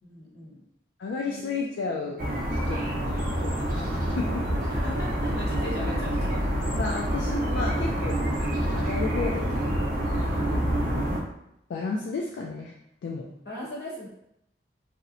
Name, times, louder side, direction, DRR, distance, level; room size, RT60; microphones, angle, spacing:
voice 1, 0.0-0.6 1.2-1.6 2.7-2.9 4.7-6.4 10.2-10.6 13.4-14.1, left 1 dB, 60° left, -5 dB, 1.0 m, -38 dB
voice 2, 1.0-2.2 2.7-2.8 3.4-4.5 6.8-8.4 8.7-9.9 10.2-10.4 11.7-12.7 13.0-13.3, left 4 dB, 85° left, -1 dB, 0.3 m, -32 dB
sound 1, 2.2-11.2, equal, 50° right, 0.5 m, -27 dB
2.8 x 2.1 x 2.5 m, 0.79 s
head